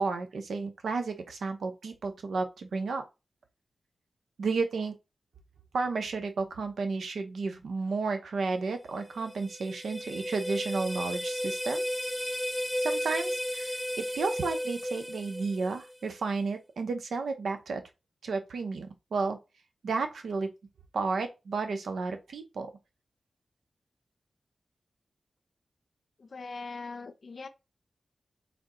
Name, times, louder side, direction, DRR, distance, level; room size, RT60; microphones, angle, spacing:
voice 1, 0.0-3.0 4.4-4.9 5.7-11.8 12.8-17.8 18.2-19.4 19.8-20.5 20.9-22.7, right 4 dB, 90° right, 0.7 m, -32 dB
sound 1, 9.0-16.1, equal, 5° left, 0.4 m, -34 dB
voice 2, 26.2-27.5, left 3 dB, 60° left, 0.6 m, -41 dB
3.5 x 2.7 x 3.7 m
wide cardioid pair, 75°, 0 cm